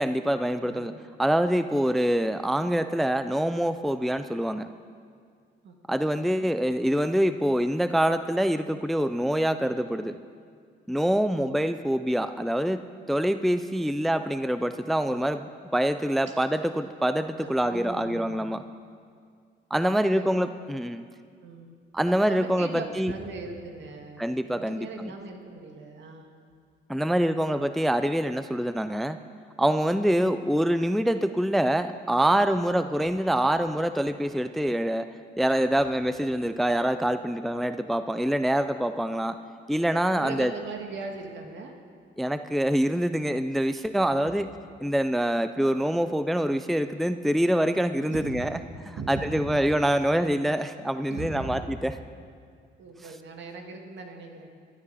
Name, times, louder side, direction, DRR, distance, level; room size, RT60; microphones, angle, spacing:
voice 1, 0.0-0.9 1.2-4.7 5.9-10.2 10.9-15.5 15.7-18.6 19.7-21.0 21.9-22.7 23.0-23.1 24.2-25.1 26.9-29.2 29.6-35.1 35.4-39.4 39.7-40.5 42.2-44.5 44.8-48.5 49.1-51.9, equal, ahead, 10 dB, 0.4 m, -25 dB
voice 2, 0.6-1.7 5.6-5.7 17.4-18.4 19.8-20.3 21.4-21.7 22.3-26.3 40.1-41.8 44.0-44.3 48.1-48.7 48.9-49.8 51.1-51.7 52.8-54.5, right 3 dB, 65° right, 3 dB, 2.0 m, -40 dB
20.0 x 12.5 x 4.2 m, 2.1 s
cardioid pair, 90°, 20 cm